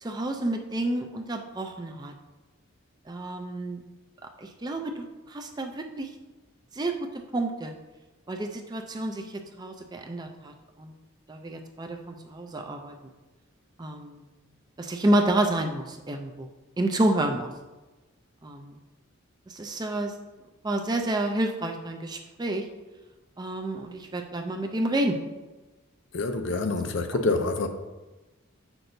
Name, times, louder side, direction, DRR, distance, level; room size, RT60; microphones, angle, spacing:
voice 1, 0.0-2.1 3.1-3.8 4.4-6.1 6.7-7.7 8.3-9.2 9.6-10.9 11.3-12.9 13.8-14.2 14.8-16.5 16.8-17.5 18.4-18.8 19.5-20.1 20.6-22.7 23.4-25.2, right 1 dB, 20° right, 4 dB, 0.4 m, -29 dB
voice 2, 26.1-27.7, left 3 dB, 60° left, 7 dB, 0.5 m, -26 dB
7.5 x 5.9 x 2.7 m, 1.1 s
head